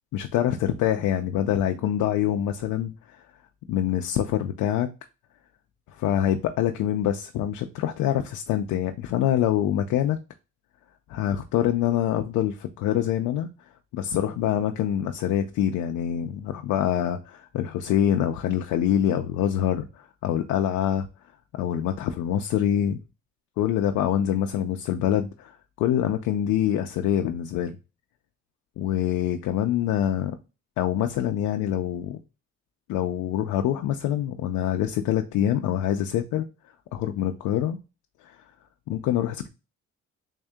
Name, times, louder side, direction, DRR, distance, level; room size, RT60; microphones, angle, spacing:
voice 1, 0.1-2.9 3.7-4.9 5.9-10.2 11.1-13.5 13.9-21.1 21.6-23.0 23.6-27.7 28.8-30.4 30.8-32.2 32.9-36.5 36.9-37.8 38.3-38.4 38.9-39.5, left 10 dB, 85° left, 0.5 m, -25 dB
3.6 x 2.7 x 3.4 m
cardioid pair, 90°, 30 cm